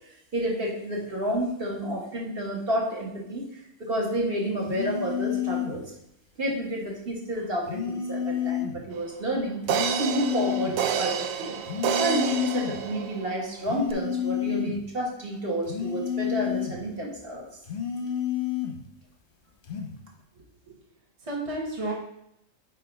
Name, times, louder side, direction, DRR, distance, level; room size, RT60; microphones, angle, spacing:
voice 1, 0.3-3.4 3.8-5.8 6.4-9.6 10.0-11.6 11.9-17.5, right 1 dB, 45° right, -2 dB, 1.5 m, -30 dB
sound 1, 4.7-5.8 7.7-8.8 9.7-10.8 11.7-12.8 13.6-14.8 15.7-16.8 17.6-18.8 19.6-20.0, left 9 dB, 45° left, 0.8 m, -30 dB
sound 2, 9.0-9.1 9.7-13.4 13.9-14.0, right 8 dB, 80° right, 1.0 m, -29 dB
voice 2, 20.3-20.7 21.2-21.9, right 2 dB, 25° right, -2 dB, 1.0 m, -33 dB
4.7 x 4.6 x 5.0 m, 0.78 s
omnidirectional pair, 1.5 m